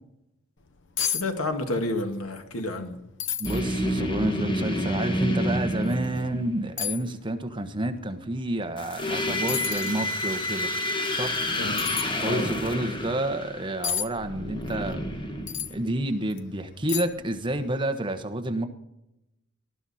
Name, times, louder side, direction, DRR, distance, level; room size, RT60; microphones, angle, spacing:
sound 1, 0.6-0.7 1.0-1.3 1.5-2.1 2.5-2.6 3.2-3.6 4.3-4.4 5.9-6.0 6.8-7.1 8.9-9.1 9.5-10.0 11.8-12.1 13.8-14.1 15.5-15.7 16.3-16.4 16.9-17.3 17.6-17.7, left 8 dB, 60° left, 0.9 m, -30 dB
voice 1, 1.0-3.0 11.6-11.8 12.2-12.5, left 2 dB, 75° left, 6 dB, 1.9 m, -30 dB
sound 2, 3.4-6.7 8.8-16.1, left 1 dB, 20° left, 1.5 m, -29 dB
voice 2, 3.4-10.7 11.2-11.4 12.2-15.0 15.7-18.6, right 1 dB, 20° right, 7 dB, 1.2 m, -29 dB
19.0 x 12.0 x 4.3 m, 0.88 s
head